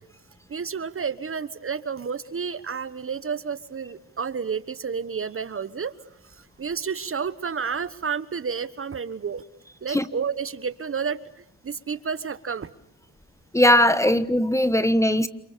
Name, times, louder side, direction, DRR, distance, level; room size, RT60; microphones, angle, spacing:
voice 1, 0.5-5.9 6.2-9.4 9.8-12.7, right 6 dB, 40° right, 1.3 m, -31 dB
voice 2, 13.5-15.3, left 1 dB, 10° left, 1.4 m, -19 dB
28.5 x 26.0 x 6.8 m
cardioid pair, 65°, 34 cm